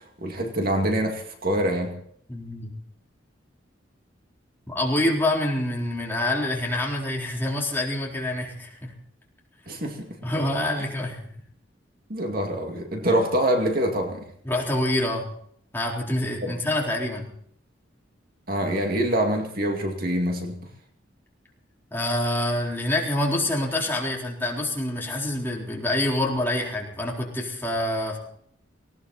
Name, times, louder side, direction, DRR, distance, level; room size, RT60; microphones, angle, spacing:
voice 1, 0.0-1.9 9.7-10.1 12.1-14.3 16.4-16.6 18.5-20.6, right 1 dB, 50° right, 3 dB, 2.3 m, -25 dB
voice 2, 2.3-2.7 4.7-8.9 10.2-11.2 14.4-15.2 15.7-17.3 21.9-28.2, left 1 dB, 10° left, -2 dB, 3.9 m, -26 dB
19.0 x 18.5 x 4.2 m, 0.65 s
head